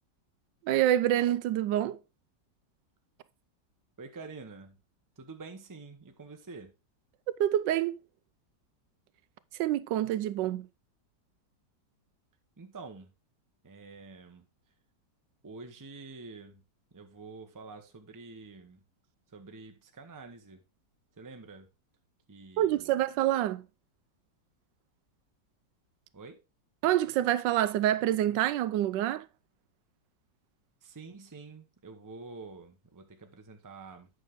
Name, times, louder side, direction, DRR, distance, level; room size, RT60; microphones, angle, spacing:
voice 1, 0.7-2.0 7.4-8.0 9.6-10.7 22.6-23.6 26.8-29.3, right 12 dB, 80° right, 1.2 m, -27 dB
voice 2, 4.0-4.8 5.2-6.7 12.6-13.1 13.6-14.4 15.4-16.6 16.9-18.8 19.3-20.6 21.2-21.7 22.3-23.0 26.1-26.4 30.8-34.1, right 3 dB, 15° right, 0.7 m, -47 dB
8.7 x 6.3 x 3.7 m
omnidirectional pair, 1.9 m